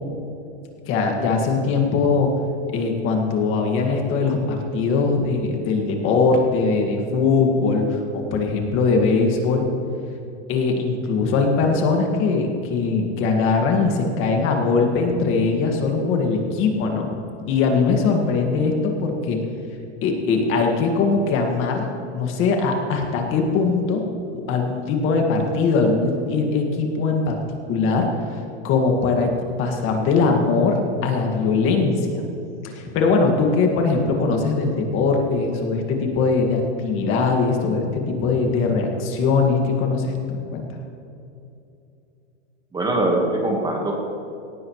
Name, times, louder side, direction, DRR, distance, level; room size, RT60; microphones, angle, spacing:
voice 1, 0.9-2.3 2.7-9.6 10.5-17.1 17.5-19.4 20.0-21.9 22.1-24.0 24.5-27.4 27.7-28.1 28.6-29.3 29.6-32.2 32.6-40.1 40.5-40.7, left 4 dB, 35° left, 2 dB, 2.0 m, -21 dB
voice 2, 42.7-43.9, right 2 dB, 10° right, 0 dB, 1.5 m, -22 dB
18.0 x 14.5 x 3.2 m, 2.7 s
supercardioid pair, 145°, 35 cm